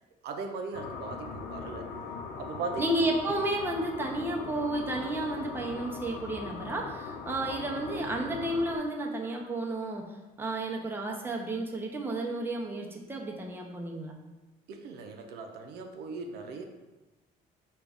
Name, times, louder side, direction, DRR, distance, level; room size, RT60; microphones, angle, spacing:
voice 1, 0.2-1.9 2.4-3.0 14.7-16.7, right 4 dB, 80° right, 4 dB, 0.5 m, -38 dB
sound 1, 0.7-8.8, left 5 dB, 80° left, 0.5 m, -40 dB
voice 2, 2.8-10.1 10.4-14.2, right 1 dB, 15° right, 0 dB, 0.6 m, -32 dB
5.0 x 2.3 x 3.5 m, 1.1 s
cardioid pair, 110°, 17 cm